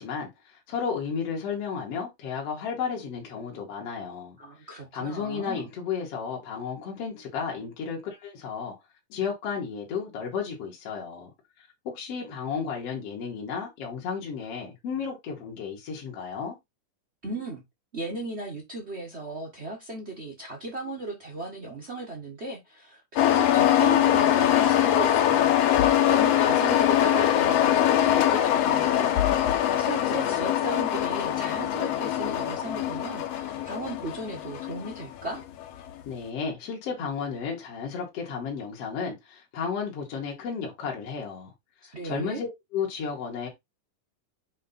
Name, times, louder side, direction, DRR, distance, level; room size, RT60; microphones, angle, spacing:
voice 1, 0.0-4.4 4.9-8.8 9.1-11.3 11.8-16.6 36.1-41.5 42.0-43.5, left 6 dB, 50° left, 2.7 m, -33 dB
voice 2, 4.4-5.7 17.2-17.6 17.9-29.2 29.8-35.4 41.8-42.4, right 2 dB, 75° right, 0.6 m, -36 dB
sound 1, 23.2-35.9, left 11 dB, 70° left, 1.6 m, -23 dB
7.5 x 3.3 x 4.2 m
omnidirectional pair, 3.8 m